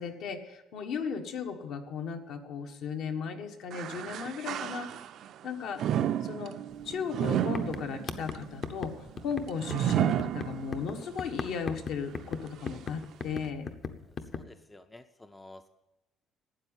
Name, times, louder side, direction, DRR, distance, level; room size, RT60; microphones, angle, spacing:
voice 1, 0.0-4.9 5.4-5.8 6.2-6.5 6.8-8.9 9.2-13.7, left 6 dB, 60° left, 5 dB, 1.4 m, -36 dB
sound 1, 3.7-5.3 5.8-11.0 11.5-11.6 12.5-12.6, right 10 dB, 50° right, 0.5 m, -32 dB
sound 2, 6.8-6.9 7.2-14.4, left 5 dB, 35° left, 0.8 m, -38 dB
voice 2, 14.1-15.7, left 2 dB, 10° left, 9 dB, 0.5 m, -52 dB
12.5 x 8.8 x 8.9 m, 1.0 s
cardioid pair, 165°, 0 cm